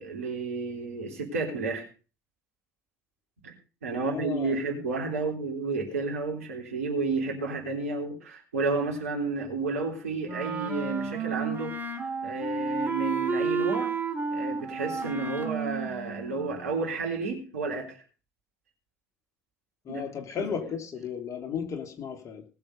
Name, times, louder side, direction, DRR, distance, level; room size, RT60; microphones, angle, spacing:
voice 1, 0.0-1.9 3.4-3.5 3.8-11.8 12.2-13.9 14.3-18.0 19.9-20.0, right 3 dB, 80° right, 3.4 m, -31 dB
voice 2, 3.9-4.6 5.2-5.3 19.8-22.5, left 7 dB, 45° left, 3.0 m, -35 dB
Wind instrument woodwind instrument, 10.2-16.9, right 4 dB, 25° right, 3.6 m, -32 dB
19.5 x 7.1 x 5.3 m
figure-of-eight pair, 55°, 8 cm